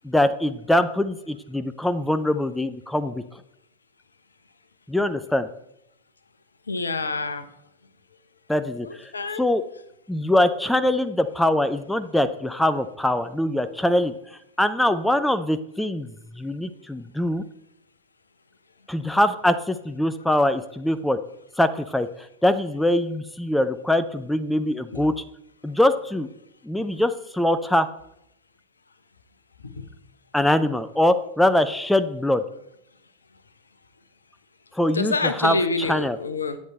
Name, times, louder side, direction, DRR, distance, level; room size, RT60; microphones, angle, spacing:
voice 1, 0.0-3.2 4.9-5.5 8.5-9.1 9.4-9.6 10.1-14.1 14.6-17.4 18.9-21.2 21.6-22.1 22.4-25.2 25.6-26.3 26.6-27.9 30.3-32.4 34.7-36.2, left 1 dB, 5° left, 11 dB, 0.5 m, -23 dB
voice 2, 6.7-7.5 8.8-9.4 24.9-25.1 29.6-29.9 34.9-36.6, left 3 dB, 75° left, 11 dB, 0.8 m, -27 dB
9.9 x 8.3 x 4.2 m, 0.80 s
figure-of-eight pair, 90°, 0 cm